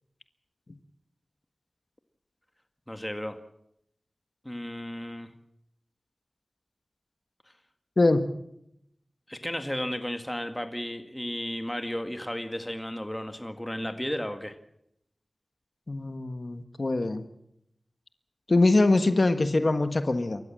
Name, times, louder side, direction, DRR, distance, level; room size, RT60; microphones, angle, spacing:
voice 1, 2.9-3.4 4.5-5.3 9.3-14.6, equal, 15° left, 7 dB, 2.0 m, -34 dB
voice 2, 15.9-17.2 18.5-20.4, left 2 dB, 60° left, 9 dB, 1.4 m, -23 dB
27.5 x 14.5 x 7.6 m, 0.77 s
wide cardioid pair, 40°, 0 cm